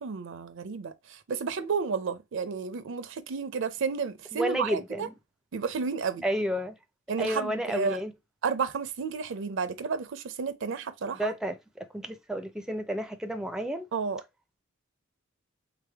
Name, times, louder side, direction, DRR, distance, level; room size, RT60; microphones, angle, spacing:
voice 1, 0.0-5.1 5.5-6.2 7.1-8.0 8.4-11.3 13.9-14.2, right 5 dB, 65° right, 0.5 m, -32 dB
voice 2, 4.3-5.1 6.2-6.8 7.2-8.1 11.2-13.9, equal, 5° right, 0.4 m, -31 dB
3.6 x 3.4 x 3.3 m
head